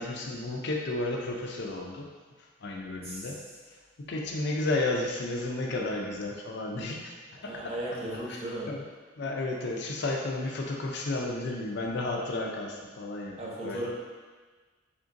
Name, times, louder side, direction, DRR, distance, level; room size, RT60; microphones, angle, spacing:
voice 1, 0.0-2.1 2.6-3.5 4.0-7.1 7.4-7.8 8.3-8.4 8.7-8.8 9.2-13.4 13.6-13.9, left 2 dB, 65° left, 0 dB, 0.5 m, -32 dB
voice 2, 3.0-3.4 7.4-8.7 13.4-13.9, right 1 dB, 35° right, -6 dB, 0.8 m, -36 dB
3.7 x 3.6 x 2.5 m, 1.4 s
head